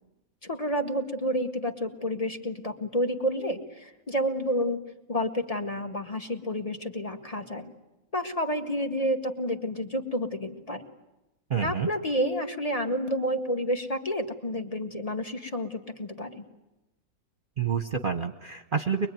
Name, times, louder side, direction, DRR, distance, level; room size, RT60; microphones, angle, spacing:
voice 1, 0.4-4.8 5.1-7.7 8.1-10.8 11.6-16.5, equal, 25° left, 4 dB, 1.8 m, -30 dB
voice 2, 11.5-11.9 17.6-19.1, right 6 dB, 40° right, 7 dB, 1.0 m, -28 dB
23.0 x 23.0 x 9.2 m, 0.99 s
omnidirectional pair, 1.5 m